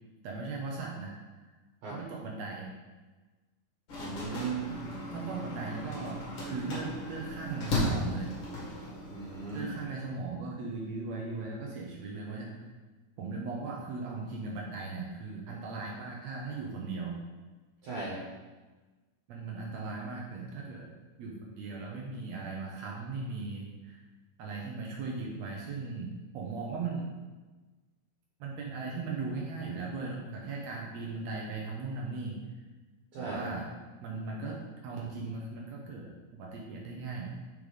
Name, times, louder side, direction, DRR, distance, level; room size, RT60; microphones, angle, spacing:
voice 1, 0.2-1.2 1.9-2.7 5.1-8.3 9.5-12.5 13.2-17.2 19.3-20.9 21.2-24.0 24.4-26.1 26.3-27.1 28.4-32.4 33.2-33.7 34.0-37.4, right 3 dB, 90° right, -2 dB, 1.5 m, -38 dB
sound 1, 3.9-9.8, left 1 dB, 45° left, 1.7 m, -36 dB
voice 2, 4.0-4.6 9.1-9.7 17.8-18.2 33.1-33.5, right 4 dB, 60° right, -6 dB, 2.3 m, -37 dB
5.3 x 5.3 x 4.8 m, 1.3 s
omnidirectional pair, 4.2 m